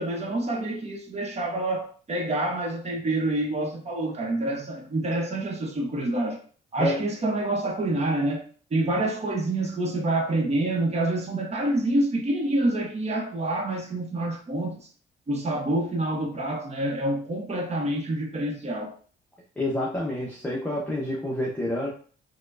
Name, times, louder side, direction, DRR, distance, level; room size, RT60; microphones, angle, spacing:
voice 1, 0.0-6.4 6.7-8.4 8.7-14.8 15.3-18.9, right 1 dB, 35° right, 1.0 m, -27 dB
voice 2, 19.6-21.9, left 1 dB, 10° left, 0.8 m, -28 dB
4.3 x 2.3 x 2.5 m
cardioid pair, 90°, 20 cm